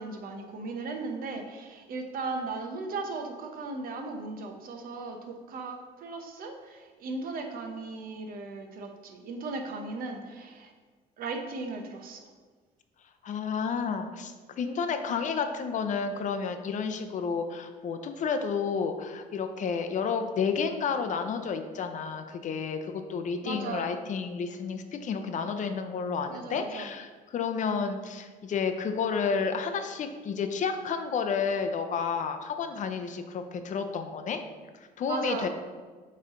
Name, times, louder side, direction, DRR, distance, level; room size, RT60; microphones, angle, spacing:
voice 1, 0.0-10.7 11.2-12.2 23.4-23.9 26.3-26.9 35.1-35.5, right 3 dB, 60° right, 3 dB, 0.9 m, -37 dB
voice 2, 13.2-34.4 35.0-35.5, left 5 dB, 45° left, 7 dB, 0.6 m, -31 dB
8.0 x 3.2 x 3.8 m, 1.4 s
cardioid pair, 110°, 17 cm